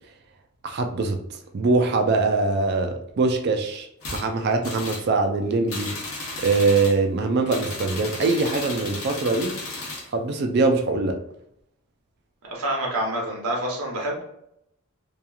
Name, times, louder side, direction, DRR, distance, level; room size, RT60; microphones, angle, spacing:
voice 1, 0.6-1.2 1.5-5.9 6.4-9.6 10.1-11.2, right 3 dB, 50° right, 5 dB, 0.4 m, -23 dB
sound 1, 4.0-4.2 4.6-5.1 5.7-7.0 7.5-10.1, left 2 dB, 85° left, 0.9 m, -34 dB
voice 2, 12.5-14.2, right 1 dB, 85° right, -1 dB, 0.9 m, -27 dB
2.9 x 2.3 x 2.3 m, 0.76 s
head